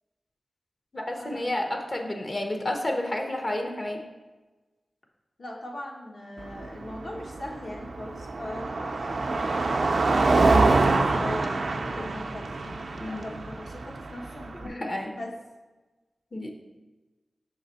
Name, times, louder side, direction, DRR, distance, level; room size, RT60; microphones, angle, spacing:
voice 1, 0.9-4.0 13.0-13.4 14.6-15.1 16.3-16.8, left 1 dB, 40° left, 3 dB, 0.7 m, -31 dB
voice 2, 5.4-9.9 10.4-14.8 15.2-15.3, left 1 dB, 70° left, -2 dB, 1.2 m, -39 dB
Car passing by, 6.4-14.7, right 3 dB, 70° right, 0.4 m, -25 dB
6.2 x 3.9 x 4.0 m, 1.2 s
wide cardioid pair, 85°, 0 cm